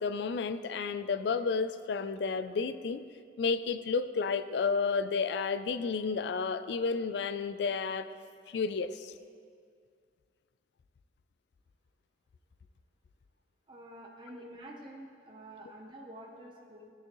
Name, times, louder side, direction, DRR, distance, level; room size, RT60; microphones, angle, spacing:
voice 1, 0.0-3.0 3.4-8.1 8.5-9.1 14.3-14.4, left 5 dB, 65° left, 12 dB, 0.3 m, -31 dB
voice 2, 13.7-16.9, right 1 dB, 25° right, -2 dB, 0.7 m, -48 dB
14.0 x 6.2 x 3.0 m, 2.2 s
head